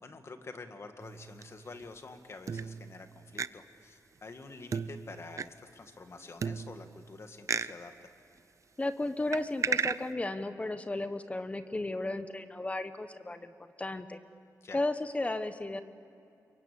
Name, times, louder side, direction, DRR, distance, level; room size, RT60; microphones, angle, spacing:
voice 1, 0.0-8.1 14.6-14.8, left 3 dB, 45° left, 7 dB, 2.0 m, -48 dB
sound 1, 1.0-1.9 2.5-3.1 3.4-3.5 4.7-5.4 6.4-7.1 7.5-7.7 9.3-10.0, right 6 dB, 50° right, 0.6 m, -34 dB
voice 2, 8.8-13.5 13.8-14.2 14.7-15.8, left 2 dB, 20° left, 10 dB, 1.1 m, -34 dB
28.0 x 23.5 x 8.5 m, 2.6 s
wide cardioid pair, 135°, 7 cm